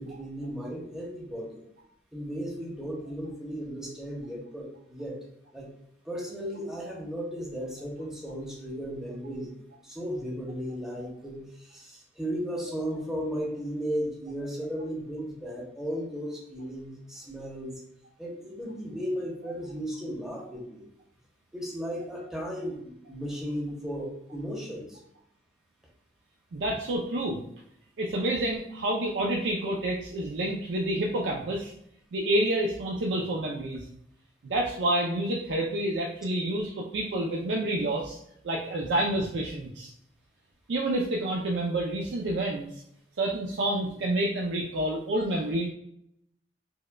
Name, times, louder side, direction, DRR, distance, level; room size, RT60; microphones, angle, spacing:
voice 1, 0.0-1.6 2.1-5.2 5.5-5.7 6.0-9.5 9.8-17.8 18.2-20.8 21.5-25.0, equal, 5° right, -3 dB, 0.8 m, -35 dB
voice 2, 26.5-27.4 28.0-31.7 32.1-33.8 34.4-38.2 38.4-39.9 40.7-42.7 43.2-45.7, right 1 dB, 85° right, -1 dB, 0.4 m, -28 dB
4.6 x 2.1 x 2.2 m, 0.72 s
head